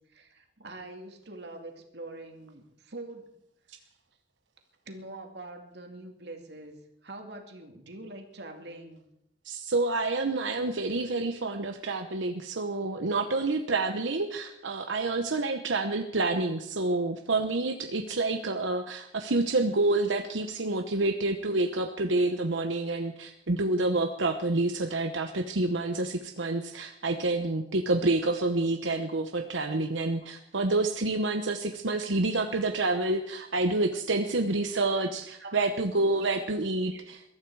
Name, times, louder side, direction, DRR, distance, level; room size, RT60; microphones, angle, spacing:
voice 1, 0.1-3.2 4.9-6.7 7.0-9.0 30.2-30.3 31.9-32.1 32.5-32.7 33.0-33.2 34.7-34.8 35.3-35.7 36.2-36.4 36.9-37.0, right 2 dB, 65° right, 3 dB, 2.4 m, -44 dB
voice 2, 9.4-37.2, right 2 dB, 90° right, 5 dB, 1.0 m, -28 dB
22.0 x 13.0 x 4.8 m, 0.79 s
head